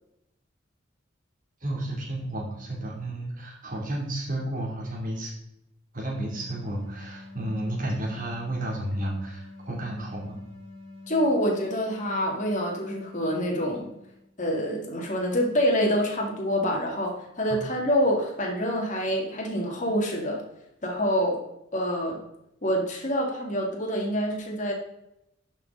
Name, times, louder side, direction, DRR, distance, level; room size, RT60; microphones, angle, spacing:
voice 1, 1.6-5.3 5.9-10.4 17.5-17.7, right 1 dB, 45° right, -2 dB, 2.9 m, -32 dB
sound 1, 6.2-14.3, left 2 dB, 70° right, 3.5 m, -46 dB
voice 2, 11.1-13.9 14.4-20.4 20.8-21.4 21.7-22.2 22.6-24.7, equal, 40° left, 0 dB, 2.1 m, -26 dB
10.5 x 6.4 x 3.9 m, 0.82 s
head